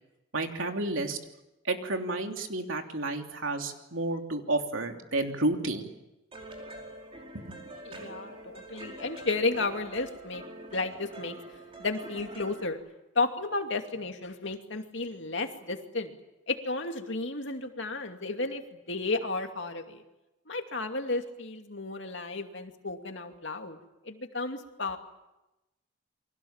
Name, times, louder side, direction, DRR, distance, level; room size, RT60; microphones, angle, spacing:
voice 1, 0.3-1.2 1.6-5.9 7.5-7.6, right 2 dB, 85° right, 4 dB, 3.1 m, -31 dB
sound 1, 6.3-12.7, right 1 dB, 25° right, 5.2 m, -45 dB
voice 2, 7.9-10.4 10.7-11.4 11.8-12.8 13.1-16.2 16.5-20.0 20.5-23.8 24.0-25.0, left 3 dB, 65° left, 5 dB, 2.6 m, -33 dB
29.0 x 23.5 x 7.4 m, 0.97 s
head